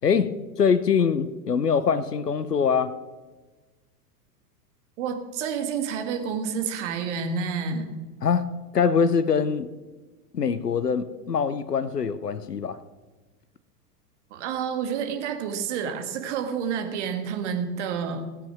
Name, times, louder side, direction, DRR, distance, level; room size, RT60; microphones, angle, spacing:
voice 1, 0.0-3.0 8.2-8.5 8.7-9.7 10.3-12.8, left 6 dB, 80° left, 15 dB, 0.8 m, -23 dB
voice 2, 5.0-7.9 14.3-18.3, right 6 dB, 50° right, 6 dB, 2.0 m, -29 dB
16.5 x 8.2 x 6.1 m, 1.3 s
figure-of-eight pair, 95°, 47 cm